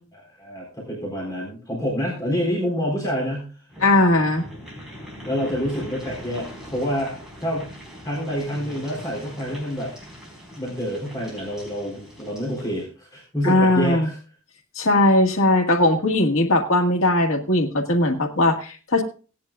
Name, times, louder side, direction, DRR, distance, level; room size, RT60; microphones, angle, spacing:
voice 1, 0.1-3.5 5.2-7.1 7.4-7.7 8.0-9.9 10.5-14.2, equal, 20° left, -4 dB, 4.0 m, -27 dB
sound 1, 3.7-12.8, equal, ahead, 4.6 m, -41 dB
voice 2, 3.8-4.4 13.4-14.1 14.7-19.0, left 2 dB, 90° left, 3 dB, 1.7 m, -19 dB
17.5 x 10.5 x 2.4 m, 0.36 s
head